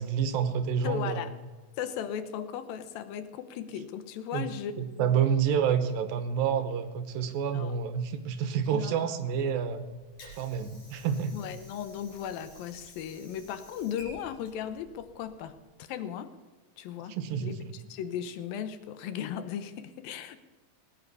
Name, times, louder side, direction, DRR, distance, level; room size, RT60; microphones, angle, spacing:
voice 1, 0.0-1.3 4.3-4.5 4.8-9.9 10.4-11.3 17.1-17.7, right 7 dB, 80° right, 10 dB, 2.8 m, -28 dB
voice 2, 0.8-1.3 1.8-5.2 7.5-7.8 8.7-9.1 11.3-15.6 15.9-16.3 16.8-20.4, left 9 dB, 80° left, 11 dB, 2.7 m, -37 dB
Water / Sink (filling or washing), 10.0-15.7, equal, 55° left, 5.9 m, -53 dB
18.5 x 8.9 x 6.9 m, 1.3 s
omnidirectional pair, 4.1 m